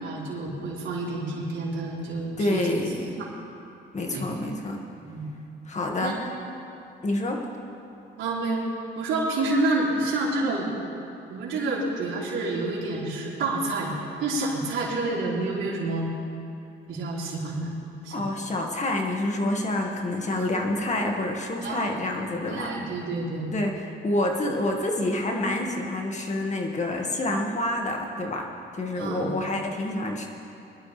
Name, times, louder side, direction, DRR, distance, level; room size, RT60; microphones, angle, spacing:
voice 1, 0.0-2.7 3.2-3.3 4.1-4.3 5.1-5.2 6.0-6.2 8.2-8.6 9.0-10.7 11.3-13.9 14.2-16.1 16.9-17.7 18.0-18.2 21.6-22.0 22.5-23.5 29.0-29.3, right 2 dB, 75° right, -5 dB, 3.8 m, -28 dB
voice 2, 2.4-3.2 3.9-4.8 5.7-6.2 7.0-7.4 18.1-22.7 23.5-28.5 28.7-30.3, left 1 dB, 35° left, 1 dB, 1.9 m, -27 dB
22.5 x 12.0 x 3.4 m, 2.7 s
cardioid pair, 90°, 20 cm